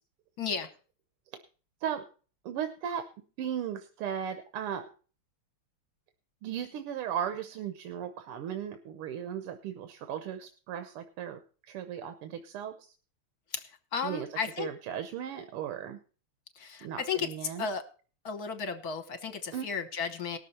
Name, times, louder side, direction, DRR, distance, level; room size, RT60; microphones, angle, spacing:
voice 1, 0.4-0.7 13.5-13.6 13.9-14.7 16.6-17.8 18.2-20.4, left 6 dB, 55° left, 9 dB, 1.3 m, -34 dB
voice 2, 2.5-3.0 3.4-4.9 6.4-12.9 14.0-14.3 14.6-16.0 16.8-17.7 19.5-19.7, right 9 dB, 90° right, 8 dB, 1.8 m, -36 dB
19.0 x 6.7 x 4.2 m, 0.38 s
omnidirectional pair, 2.4 m